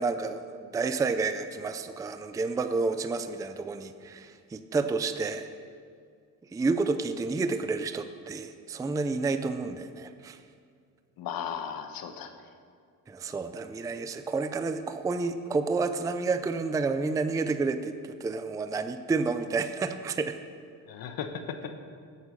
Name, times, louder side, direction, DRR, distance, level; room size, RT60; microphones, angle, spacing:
voice 1, 0.0-5.5 6.5-10.4 13.1-17.9 18.2-20.4, right 4 dB, 10° right, 10 dB, 0.4 m, -30 dB
voice 2, 11.2-12.3 20.9-21.7, left 7 dB, 70° left, 7 dB, 1.2 m, -36 dB
12.5 x 8.2 x 6.5 m, 2.2 s
cardioid pair, 140°, 36 cm